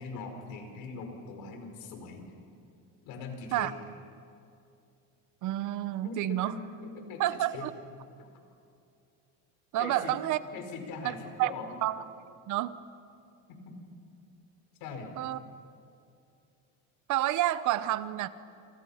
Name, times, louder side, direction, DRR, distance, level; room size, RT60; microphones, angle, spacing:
voice 1, 0.0-2.3 3.0-3.7 6.0-7.7 8.2-8.3 9.8-10.2 10.5-11.8 14.8-15.1, left 4 dB, 70° left, 4 dB, 5.3 m, -41 dB
voice 2, 5.4-6.6 7.2-7.7 9.7-10.4 11.0-11.1 11.4-11.5 11.8-12.0 12.5-12.7 15.2-15.4 17.1-18.3, right 14 dB, 55° right, 14 dB, 1.0 m, -29 dB
28.5 x 27.5 x 5.8 m, 2.5 s
cardioid pair, 140°, 36 cm